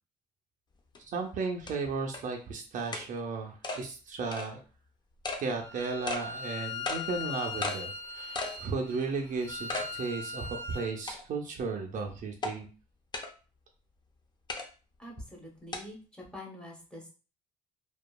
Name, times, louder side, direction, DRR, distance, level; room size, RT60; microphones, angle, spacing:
sound 1, 1.0-1.1 1.7-1.8 2.1-2.2 2.9-3.1 3.6-3.8 4.3-4.5 5.2-5.4 6.1-6.2 6.9-7.0 7.6-7.8 8.4-8.6 9.0-9.1 9.7-9.9 10.3-10.4 11.1-11.5 12.4-12.5 13.1-13.3 14.5-14.7 15.7-15.8, left 3 dB, 25° left, 0.5 m, -34 dB
voice 1, 1.1-4.6 5.4-12.7, right 4 dB, 50° right, 2 dB, 0.5 m, -35 dB
Bowed string instrument, 5.6-11.0, left 4 dB, 85° left, 0.6 m, -40 dB
voice 2, 15.0-17.1, left 1 dB, 5° left, -2 dB, 0.9 m, -45 dB
2.8 x 2.3 x 2.2 m, 0.35 s
cardioid pair, 110°, 17 cm